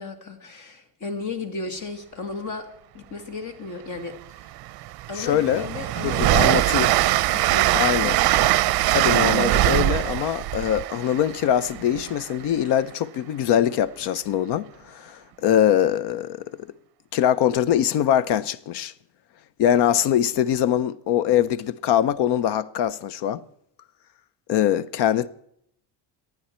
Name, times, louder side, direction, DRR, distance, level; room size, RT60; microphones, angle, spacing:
voice 1, 0.0-2.7 2.9-4.2 4.4-4.5 5.1-6.7 7.3-8.7, left 4 dB, 45° left, 1.9 m, -35 dB
Train, 4.1-4.2 4.6-12.3, right 16 dB, 60° right, 0.5 m, -22 dB
voice 2, 5.2-5.7 6.0-6.9 7.7-8.2 8.9-16.5 17.1-18.9 19.6-23.4 24.5-25.3, left 10 dB, 75° left, 0.7 m, -22 dB
27.0 x 9.3 x 4.4 m
cardioid pair, 170°, 41 cm